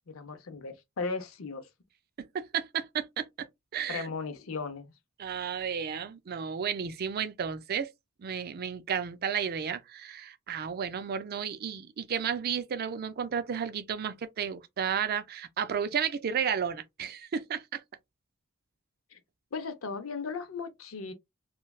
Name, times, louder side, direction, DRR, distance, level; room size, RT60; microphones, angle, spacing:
voice 1, 0.0-1.7 3.9-4.9 19.1-19.2 19.5-21.1, left 4 dB, 90° left, 0.6 m, -36 dB
voice 2, 2.2-4.1 5.2-7.9 8.2-17.8, right 7 dB, 50° right, 0.4 m, -33 dB
3.2 x 2.2 x 2.3 m
head